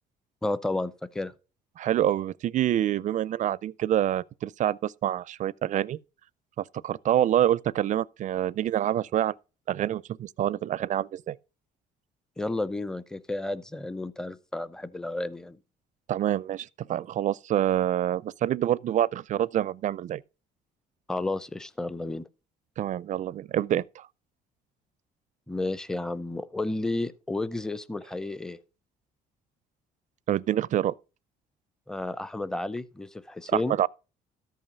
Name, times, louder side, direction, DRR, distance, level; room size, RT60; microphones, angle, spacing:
voice 1, 0.4-1.3 12.4-15.6 21.1-22.3 25.5-28.6 31.9-33.8, left 2 dB, 5° left, 0.6 m, -32 dB
voice 2, 1.8-6.0 6.6-9.3 9.7-11.4 16.1-20.2 22.8-24.1 30.3-30.9 33.5-33.9, right 11 dB, 45° right, 0.4 m, -26 dB
13.5 x 5.6 x 5.2 m
cardioid pair, 110°, 17 cm